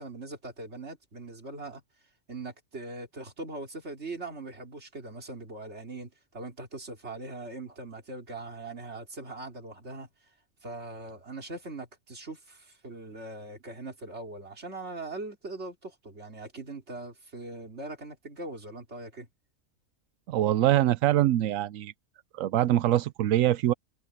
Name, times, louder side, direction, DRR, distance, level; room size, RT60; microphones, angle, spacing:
voice 1, 0.0-1.8 2.3-10.1 10.6-19.3, right 2 dB, 55° right, 3.5 m, -41 dB
voice 2, 20.3-21.9 22.3-23.7, right 13 dB, 85° right, 1.0 m, -24 dB
omnidirectional pair, 1.4 m